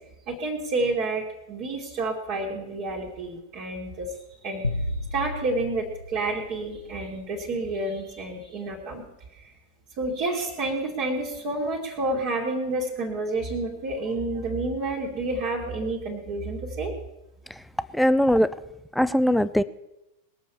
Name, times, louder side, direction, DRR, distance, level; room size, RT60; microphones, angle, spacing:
voice 1, 0.3-9.0 9.3-9.5 10.0-16.9, right 2 dB, 40° right, -2 dB, 2.7 m, -29 dB
sound 1, 4.6-7.1, left 2 dB, 80° left, 0.6 m, -33 dB
voice 2, 17.9-18.5 19.0-19.6, equal, ahead, 14 dB, 0.6 m, -20 dB
21.0 x 7.1 x 7.2 m, 0.92 s
figure-of-eight pair, 90°, 0 cm